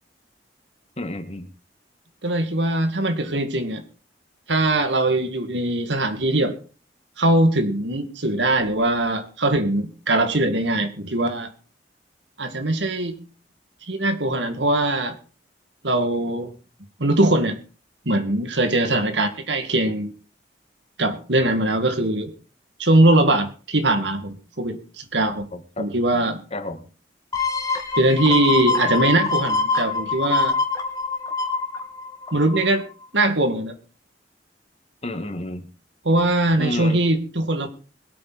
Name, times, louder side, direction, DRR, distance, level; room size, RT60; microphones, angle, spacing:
voice 1, 1.0-1.5 25.5-25.9 26.5-26.9 35.0-35.7 36.6-37.0, left 1 dB, 35° left, 7 dB, 2.0 m, -30 dB
voice 2, 2.2-3.8 4.5-6.5 7.2-11.5 12.4-13.2 13.9-15.2 15.8-16.5 17.0-17.6 18.1-20.1 21.0-22.3 22.8-25.5 25.8-26.4 28.0-30.6 32.3-32.8 33.1-33.8 36.0-37.7, right 1 dB, 85° right, 8 dB, 2.3 m, -21 dB
sound 1, 27.3-32.8 33.3-33.4, left 4 dB, 20° left, 2.3 m, -24 dB
22.0 x 8.7 x 4.3 m, 0.36 s
head